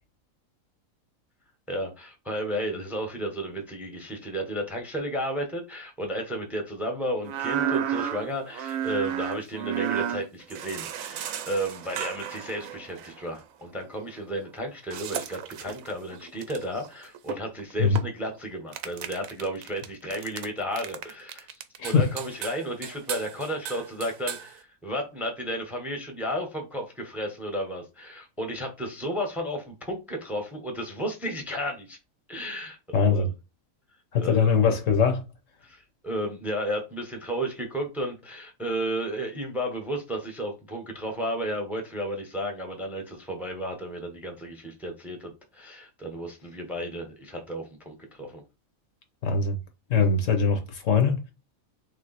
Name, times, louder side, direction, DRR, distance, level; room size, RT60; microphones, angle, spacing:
voice 1, 1.7-32.0 32.3-33.3 34.2-34.4 35.6-48.4, equal, ahead, 0.9 m, -33 dB
sound 1, 7.2-13.2 14.9-18.3 18.7-20.5 20.8-24.5, right 9 dB, 75° right, 1.0 m, -33 dB
voice 2, 32.9-33.3 34.1-35.2 49.2-49.6 49.9-51.2, left 5 dB, 70° left, 1.2 m, -22 dB
3.5 x 3.4 x 4.0 m
omnidirectional pair, 1.5 m